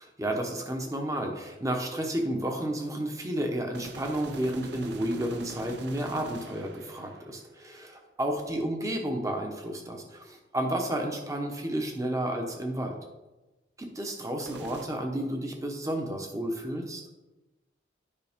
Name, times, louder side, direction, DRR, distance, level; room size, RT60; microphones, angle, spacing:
voice 1, 0.2-13.0 13.8-17.0, right 1 dB, 15° right, 2 dB, 1.0 m, -31 dB
sound 1, 3.7-7.8 14.4-14.9, right 3 dB, 65° right, 0.6 m, -45 dB
9.7 x 5.4 x 3.6 m, 1.1 s
head